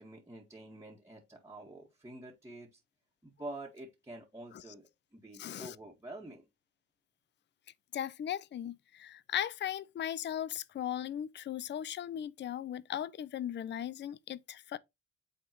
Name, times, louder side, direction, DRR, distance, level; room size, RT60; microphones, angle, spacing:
voice 1, 0.0-2.8 3.2-6.5, right 2 dB, 10° right, 1.8 m, -48 dB
voice 2, 5.4-5.8 7.9-14.8, left 10 dB, 40° left, 0.5 m, -37 dB
8.7 x 3.6 x 3.1 m
cardioid pair, 90°, 30 cm